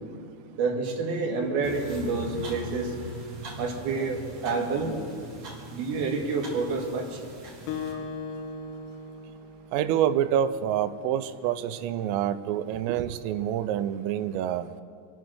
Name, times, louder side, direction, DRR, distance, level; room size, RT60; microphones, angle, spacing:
voice 1, 0.6-2.9 3.5-4.9 5.7-7.2, right 4 dB, 60° right, 3.4 m, -28 dB
sound 1, 1.6-7.9, right 1 dB, 40° right, 2.5 m, -41 dB
Acoustic guitar, 7.7-10.4, left 4 dB, 75° left, 3.7 m, -38 dB
voice 2, 9.7-14.7, right 10 dB, 85° right, 3.2 m, -27 dB
25.0 x 9.2 x 6.3 m
omnidirectional pair, 5.9 m